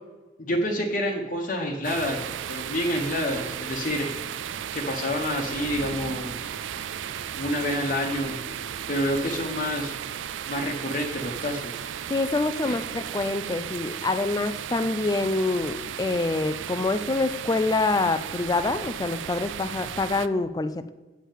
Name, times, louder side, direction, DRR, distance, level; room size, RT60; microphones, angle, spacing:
voice 1, 0.4-4.1 4.7-6.3 7.4-8.4 8.9-9.9 10.5-11.9 12.6-12.8, left 1 dB, 45° left, 0 dB, 1.0 m, -28 dB
sound 1, 1.8-20.3, right 9 dB, 85° right, 0.4 m, -35 dB
sound 2, 5.4-9.5, equal, 40° right, 1.0 m, -45 dB
voice 2, 12.1-20.9, left 3 dB, 20° left, 10 dB, 0.3 m, -26 dB
8.5 x 5.5 x 7.3 m, 1.2 s
head